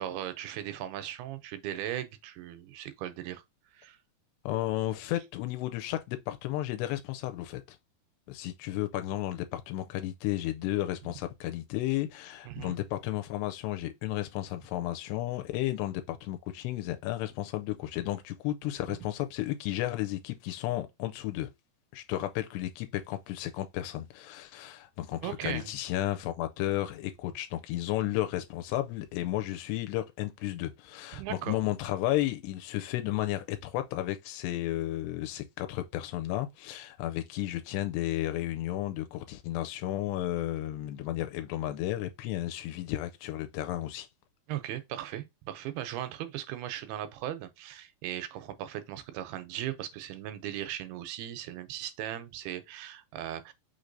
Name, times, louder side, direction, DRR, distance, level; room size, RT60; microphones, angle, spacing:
voice 1, 0.0-3.4 3.7-4.0 12.5-12.8 25.2-25.7 31.2-31.6 44.5-53.5, right 12 dB, 85° right, 2.3 m, -38 dB
voice 2, 4.5-7.8 8.3-21.5 21.9-44.1, left 14 dB, 85° left, 2.6 m, -33 dB
5.8 x 3.2 x 2.5 m
omnidirectional pair, 4.7 m